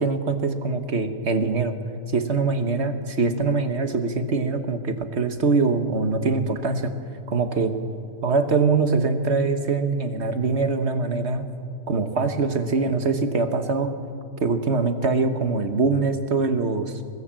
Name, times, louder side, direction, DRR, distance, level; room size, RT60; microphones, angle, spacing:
voice 1, 0.0-1.7 2.1-6.9 7.3-7.7 8.2-11.5 11.9-13.9 14.4-16.9, right 4 dB, 45° right, 8 dB, 1.5 m, -23 dB
23.5 x 19.5 x 7.6 m, 2.4 s
omnidirectional pair, 1.6 m